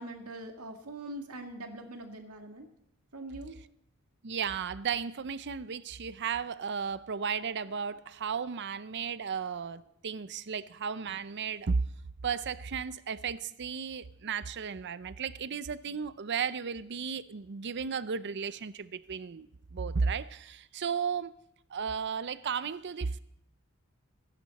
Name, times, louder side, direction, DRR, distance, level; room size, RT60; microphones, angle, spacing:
voice 1, 0.0-2.7 3.1-3.6, right 1 dB, 85° right, 2.0 m, -42 dB
voice 2, 4.2-11.8 12.2-21.3 21.7-23.2, right 6 dB, 55° right, 0.6 m, -34 dB
24.0 x 11.0 x 4.2 m
head